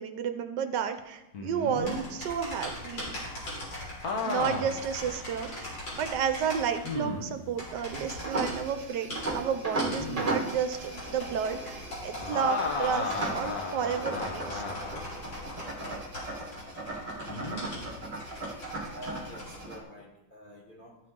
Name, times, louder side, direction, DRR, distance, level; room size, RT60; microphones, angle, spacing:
voice 1, 0.0-3.2 4.2-14.8, right 7 dB, 75° right, 8 dB, 1.2 m, -32 dB
sound 1, 1.3-2.0 4.0-4.8 5.4-5.5 6.8-7.4 9.8-10.4 12.2-15.1 17.3-17.6, left 3 dB, 55° left, 1.5 m, -34 dB
sound 2, 1.8-19.6, left 1 dB, 80° left, 3.9 m, -41 dB
sound 3, 7.9-19.8, right 2 dB, 25° right, 1.2 m, -37 dB
voice 2, 18.9-21.0, left 1 dB, 40° left, -1 dB, 0.8 m, -46 dB
13.0 x 4.7 x 3.6 m, 0.92 s
omnidirectional pair, 2.0 m